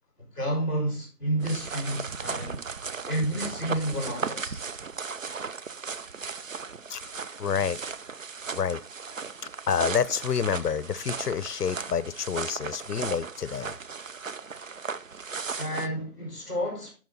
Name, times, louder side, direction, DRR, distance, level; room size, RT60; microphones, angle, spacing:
voice 1, 0.2-2.6 3.1-4.6 15.5-16.9, right 1 dB, 10° right, 4.3 m, -30 dB
sound 1, 1.4-15.9, right 5 dB, 60° right, 0.5 m, -36 dB
voice 2, 7.4-7.8 8.5-8.8 9.7-13.7, left 7 dB, 80° left, 0.7 m, -28 dB
11.0 x 4.7 x 3.9 m
figure-of-eight pair, 180°, 46 cm